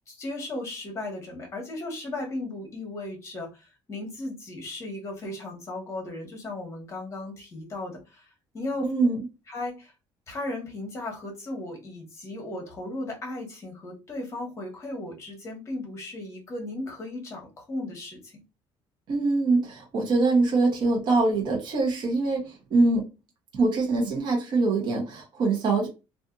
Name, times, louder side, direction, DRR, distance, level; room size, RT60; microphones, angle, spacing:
voice 1, 0.1-8.9 9.5-9.9 10.3-18.4, left 2 dB, 30° left, 1.1 m, -36 dB
voice 2, 8.8-9.2 19.1-23.1 23.5-25.9, right 3 dB, 45° right, 0.9 m, -24 dB
2.6 x 2.5 x 2.4 m
cardioid pair, 155°, 10 cm